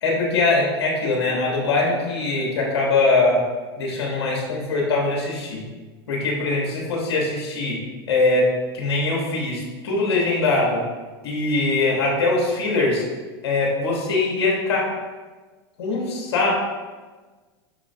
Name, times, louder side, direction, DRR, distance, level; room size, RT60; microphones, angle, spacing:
voice 1, 0.0-3.4 3.8-5.6 6.1-7.8 8.1-8.5 8.7-10.8 11.2-13.0 13.4-14.9 15.8-16.5, left 3 dB, 80° left, -2 dB, 1.1 m, -22 dB
5.5 x 3.0 x 2.7 m, 1.3 s
hypercardioid pair, 105°, 13 cm